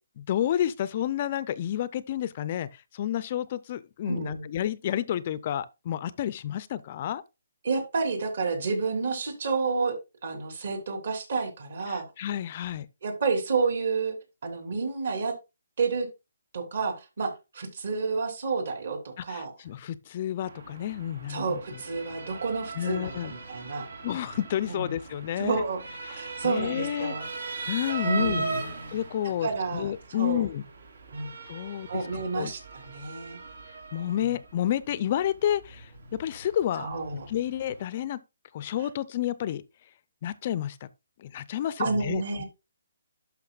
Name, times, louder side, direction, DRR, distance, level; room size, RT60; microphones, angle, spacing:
voice 1, 0.2-7.2 11.9-12.9 19.2-21.6 22.8-23.3 24.0-25.6 26.1-27.1 27.7-28.4 28.9-30.6 31.5-32.0 32.4-32.5 33.9-36.9 37.3-38.2 38.5-39.6 40.2-40.9 41.2-42.4, left 11 dB, 35° left, 0.4 m, -30 dB
voice 2, 4.1-4.5 7.6-9.9 10.2-12.0 13.0-14.2 14.4-15.3 15.8-16.1 16.5-19.5 21.3-23.9 24.6-24.9 25.4-25.8 26.1-27.2 28.0-28.7 29.4-30.4 31.1-31.3 31.9-33.4 34.2-34.4 36.8-37.2 41.8-42.4, right 4 dB, 60° right, 3.2 m, -30 dB
Motor vehicle (road) / Siren, 20.4-37.8, right 4 dB, 75° right, 3.0 m, -40 dB
11.5 x 5.7 x 2.3 m
hypercardioid pair, 165°, 0 cm